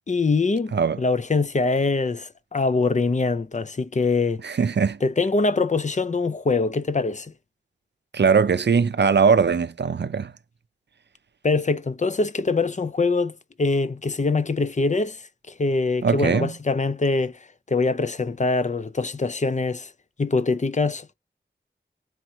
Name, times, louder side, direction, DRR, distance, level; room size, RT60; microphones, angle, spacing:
voice 1, 0.1-4.4 5.0-7.3 11.4-15.2 15.6-17.4 17.7-19.9 20.2-21.1, left 3 dB, 40° left, 0.5 m, -23 dB
voice 2, 4.4-5.0 8.1-10.3 16.0-16.5, right 6 dB, 70° right, 0.5 m, -20 dB
4.4 x 3.0 x 3.7 m
wide cardioid pair, 60°, 18 cm